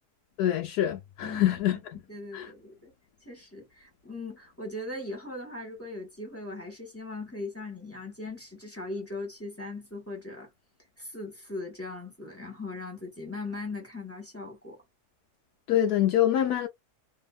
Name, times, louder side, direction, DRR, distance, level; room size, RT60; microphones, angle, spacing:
voice 1, 0.4-1.8 2.3-2.5 15.7-16.7, left 12 dB, 80° left, 1.1 m, -25 dB
voice 2, 1.2-1.6 1.9-2.9 3.2-10.5 11.0-14.8, left 2 dB, 10° left, 1.3 m, -39 dB
2.8 x 2.7 x 2.3 m
omnidirectional pair, 1.7 m